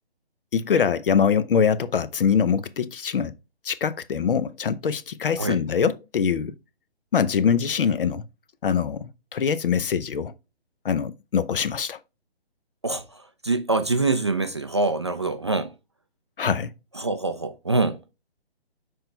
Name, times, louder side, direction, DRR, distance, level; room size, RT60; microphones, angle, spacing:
voice 1, 0.5-3.3 3.6-6.5 7.1-8.2 8.6-10.3 10.8-12.0 16.4-16.7, left 7 dB, 60° left, 0.7 m, -23 dB
voice 2, 12.8-15.7 17.0-18.0, right 3 dB, 30° right, 0.4 m, -25 dB
6.3 x 4.6 x 3.2 m
hypercardioid pair, 150°, 32 cm